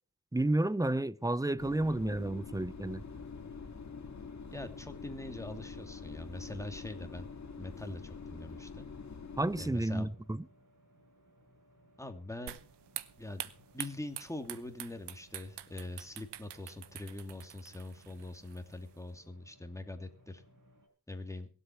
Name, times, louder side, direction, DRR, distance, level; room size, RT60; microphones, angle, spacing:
voice 1, 0.3-3.0 9.4-10.4, right 2 dB, 10° right, 0.7 m, -31 dB
sound 1, 1.2-20.9, right 1 dB, 50° right, 5.6 m, -64 dB
sound 2, 1.6-9.7, left 5 dB, 45° left, 2.2 m, -46 dB
voice 2, 4.5-7.3 7.6-8.9 9.6-10.1 12.0-12.7 13.2-20.4 21.1-21.5, left 2 dB, 5° left, 2.7 m, -43 dB
sound 3, 12.5-19.0, right 12 dB, 80° right, 1.0 m, -46 dB
23.0 x 8.3 x 4.6 m
cardioid pair, 65°, 40 cm